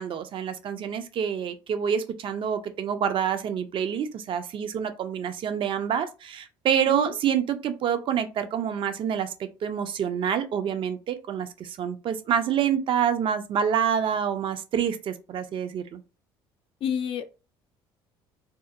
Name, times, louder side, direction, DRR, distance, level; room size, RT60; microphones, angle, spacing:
voice 1, 0.0-9.3 9.6-16.0, right 8 dB, 50° right, 0.5 m, -27 dB
voice 2, 16.8-17.3, left 8 dB, 55° left, 0.4 m, -29 dB
2.8 x 2.0 x 2.3 m
supercardioid pair, 80°, 11 cm